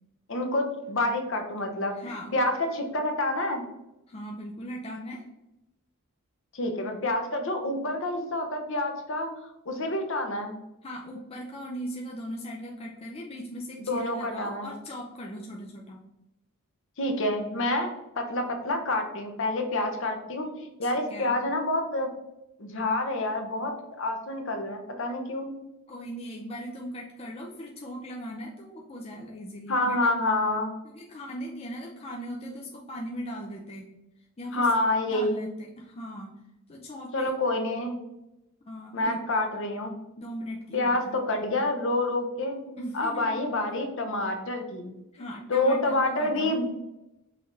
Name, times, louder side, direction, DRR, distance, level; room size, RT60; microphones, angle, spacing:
voice 1, 0.3-3.6 6.5-9.3 9.7-10.5 13.8-14.7 17.0-17.9 18.2-22.1 22.6-25.6 29.7-30.7 34.5-35.5 37.1-38.0 38.9-39.9 40.7-44.9 45.5-46.7, left 2 dB, 60° left, 4 dB, 0.8 m, -28 dB
voice 2, 2.0-2.4 4.1-5.3 10.8-16.0 20.8-21.3 25.9-30.1 30.8-33.8 34.4-34.7 35.1-36.3 36.7-37.3 38.7-39.2 40.2-41.2 42.8-43.4 45.1-46.5, equal, 25° left, -1 dB, 0.4 m, -39 dB
5.7 x 3.3 x 2.6 m, 0.92 s
head